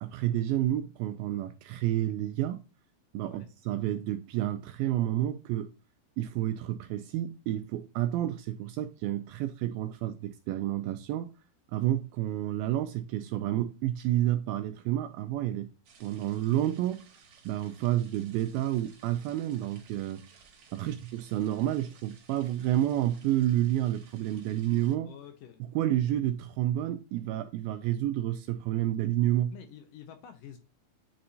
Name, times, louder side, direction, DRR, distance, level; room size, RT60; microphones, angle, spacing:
voice 1, 0.0-2.6 3.1-5.7 6.2-11.3 11.7-15.7 16.0-17.1 17.5-20.3 20.7-25.1 25.8-29.5, right 13 dB, 80° right, 2.1 m, -30 dB
sound 1, 15.8-24.9, right 6 dB, 55° right, 2.3 m, -58 dB
voice 2, 25.0-25.6 25.9-26.1 29.5-30.6, left 9 dB, 75° left, 2.1 m, -49 dB
8.6 x 4.3 x 2.6 m
omnidirectional pair, 4.6 m